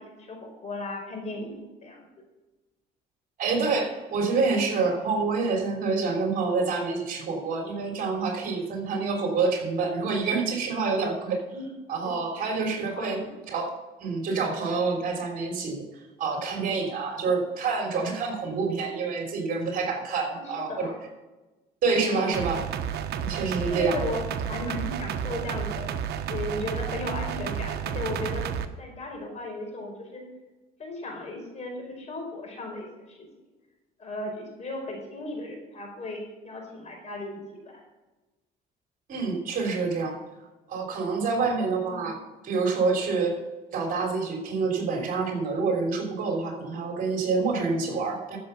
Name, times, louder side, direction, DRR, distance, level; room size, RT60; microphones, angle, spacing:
voice 1, 0.0-2.0 11.5-11.7 12.0-12.1 13.0-13.3 20.3-20.9 22.1-22.4 23.7-25.9 26.3-28.4 28.8-30.2 30.8-33.3 34.0-37.8 41.9-42.1, left 2 dB, 40° left, 1 dB, 5.0 m, -36 dB
voice 2, 3.4-11.4 11.9-13.2 13.5-13.7 14.0-20.9 21.8-22.6 23.2-24.0 39.1-40.2 40.7-42.1 42.4-43.3 43.7-48.4, right 4 dB, 55° right, 2 dB, 3.4 m, -27 dB
sound 1, 22.3-28.7, right 8 dB, 75° right, 1.0 m, -31 dB
14.0 x 7.0 x 5.7 m, 1.1 s
cardioid pair, 110°, 17 cm